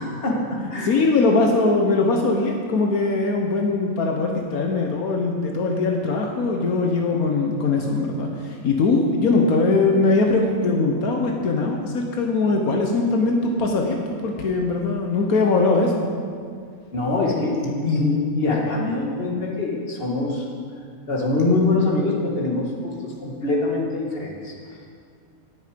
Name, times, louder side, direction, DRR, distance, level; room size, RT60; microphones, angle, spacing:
voice 1, 0.0-0.9 16.9-20.5 21.1-24.8, left 2 dB, 40° left, -2 dB, 2.0 m, -24 dB
voice 2, 0.6-14.0 14.2-16.1, left 3 dB, 80° left, 2 dB, 1.5 m, -21 dB
19.0 x 6.7 x 5.1 m, 2.2 s
omnidirectional pair, 1.5 m